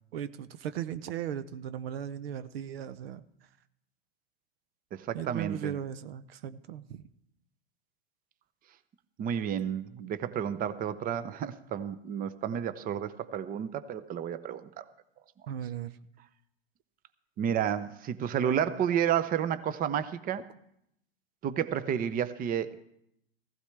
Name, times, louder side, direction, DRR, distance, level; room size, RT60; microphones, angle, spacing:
voice 1, 0.1-3.5 5.1-7.0 15.5-16.0, right 9 dB, 70° right, 13 dB, 0.7 m, -37 dB
voice 2, 4.9-5.7 9.2-14.8 17.4-20.5 21.4-22.8, right 9 dB, 30° right, 14 dB, 0.7 m, -31 dB
15.5 x 15.0 x 3.3 m, 0.76 s
hypercardioid pair, 100°, 31 cm